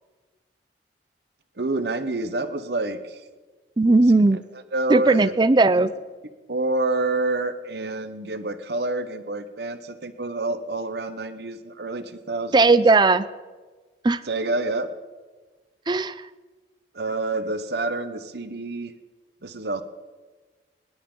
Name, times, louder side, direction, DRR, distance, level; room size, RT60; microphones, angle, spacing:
voice 1, 1.6-3.2 4.3-5.5 5.7-5.9 6.5-12.8 14.2-14.9 16.9-18.9 19.4-19.8, right 2 dB, 70° right, 10 dB, 1.1 m, -28 dB
voice 2, 3.8-4.4 4.9-5.9 12.5-13.2 14.0-14.2 15.9-16.1, right 3 dB, 25° right, 15 dB, 0.5 m, -17 dB
25.0 x 11.0 x 3.9 m, 1.4 s
head